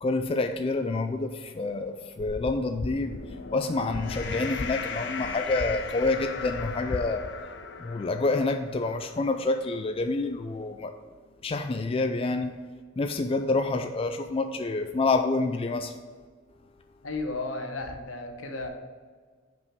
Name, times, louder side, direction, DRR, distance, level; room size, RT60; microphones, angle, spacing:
voice 1, 0.0-3.2 3.5-7.3 7.8-10.9 11.4-12.5 13.0-15.9, left 3 dB, 30° left, 7 dB, 0.4 m, -27 dB
sound 1, 2.9-9.4, left 5 dB, 60° left, 0.7 m, -38 dB
voice 2, 17.0-18.7, left 2 dB, 90° left, 4 dB, 1.1 m, -34 dB
5.6 x 5.4 x 6.0 m, 1.5 s
head